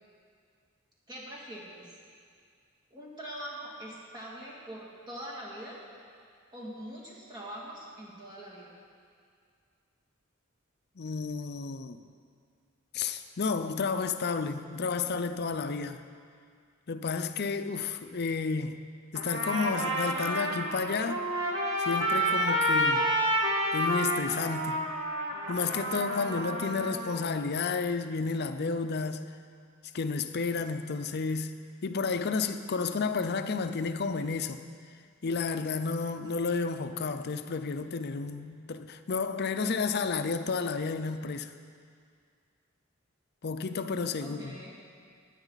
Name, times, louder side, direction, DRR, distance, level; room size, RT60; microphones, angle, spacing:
voice 1, 1.1-2.0 2.9-5.8 6.5-8.7 44.2-44.7, right 1 dB, 20° right, 2.5 m, -43 dB
voice 2, 11.0-12.0 12.9-16.0 16.9-18.8 19.1-21.3 21.8-23.0 23.7-24.8 25.5-29.2 29.9-34.6 35.2-41.5 43.4-44.6, left 4 dB, 50° left, 0.6 m, -31 dB
Trumpet, 19.1-27.2, equal, 65° right, 1.7 m, -29 dB
20.5 x 9.1 x 4.1 m
head